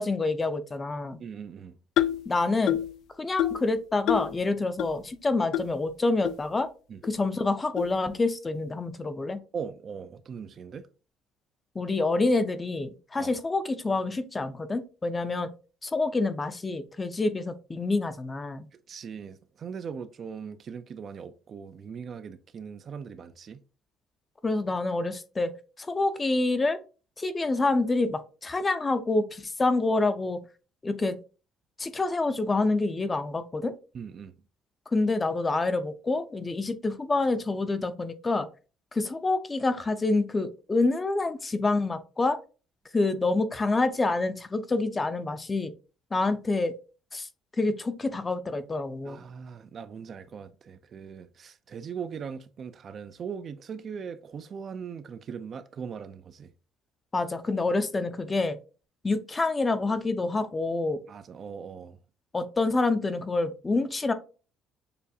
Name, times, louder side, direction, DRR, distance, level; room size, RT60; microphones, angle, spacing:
voice 1, 0.0-1.2 2.3-2.8 3.2-6.7 7.0-9.4 11.8-15.5 15.8-18.7 24.4-25.5 25.8-26.8 27.2-30.4 30.8-31.2 31.8-33.7 34.9-38.5 38.9-42.4 42.9-45.7 46.1-46.7 47.1-47.3 47.6-49.2 57.1-58.6 59.0-61.0 62.3-64.1, left 3 dB, 20° left, 0.5 m, -27 dB
voice 2, 1.2-1.8 6.9-7.0 9.5-10.9 13.2-13.3 18.9-23.6 33.9-34.3 49.0-56.5 61.1-62.0, right 6 dB, 45° right, 0.4 m, -40 dB
sound 1, 2.0-2.3 2.7-3.0 3.4-3.7 4.1-4.3 4.8-4.9 5.5-5.7 6.2-6.3 7.0-7.1 7.8-7.9, left 12 dB, 70° left, 0.3 m, -26 dB
6.7 x 2.5 x 2.7 m
cardioid pair, 120°, 0 cm